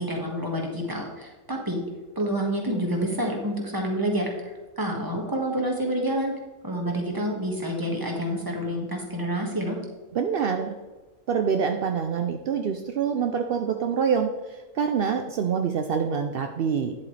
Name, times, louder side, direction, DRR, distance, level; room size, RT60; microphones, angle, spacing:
voice 1, 0.0-1.8 2.1-6.3 6.6-9.8, equal, 15° right, 1 dB, 1.6 m, -28 dB
voice 2, 10.1-10.7 11.3-17.0, right 6 dB, 65° right, 5 dB, 0.5 m, -26 dB
10.0 x 8.1 x 3.3 m, 1.2 s
omnidirectional pair, 1.6 m